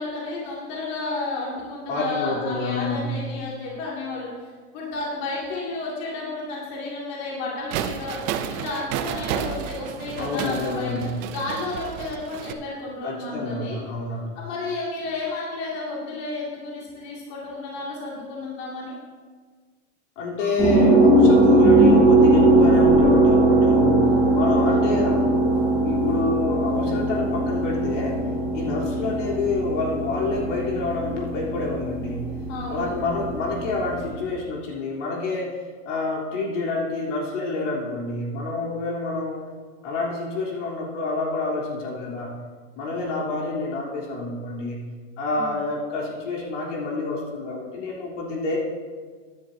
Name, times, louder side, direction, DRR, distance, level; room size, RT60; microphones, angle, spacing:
voice 1, 0.0-4.3 4.7-8.2 8.5-13.8 14.4-18.9 24.6-25.0 32.5-32.9 45.3-45.5, left 2 dB, 40° left, -5 dB, 2.5 m, -32 dB
voice 2, 1.9-3.2 10.2-11.1 13.0-14.3 20.2-24.0 24.3-25.3 25.8-28.2 28.5-32.2 32.7-35.5 35.9-39.4 39.8-42.3 42.8-44.8 45.2-48.6, left 3 dB, 70° left, -4 dB, 3.6 m, -28 dB
sound 1, 7.7-12.5, right 9 dB, 25° right, 0.4 m, -31 dB
sound 2, 20.6-34.1, right 2 dB, 5° right, 3.2 m, -19 dB
16.5 x 10.5 x 2.7 m, 1.5 s
supercardioid pair, 155°, 38 cm